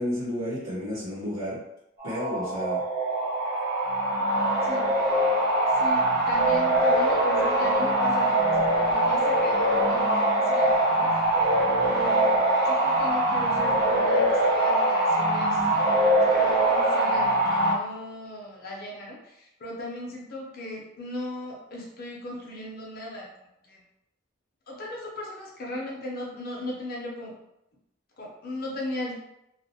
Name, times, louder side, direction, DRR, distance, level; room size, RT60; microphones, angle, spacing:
voice 1, 0.0-1.6 2.0-2.8, equal, 85° right, -9 dB, 1.0 m, -31 dB
sound 1, 2.0-17.7, right 1 dB, 50° right, 0.9 m, -23 dB
voice 2, 4.6-4.9 5.7-11.2 11.8-15.7 16.1-23.3 23.7-23.8 24.7-27.4 28.2-29.1, left 1 dB, 45° left, -3 dB, 0.6 m, -38 dB
2.4 x 2.1 x 2.7 m, 0.84 s
head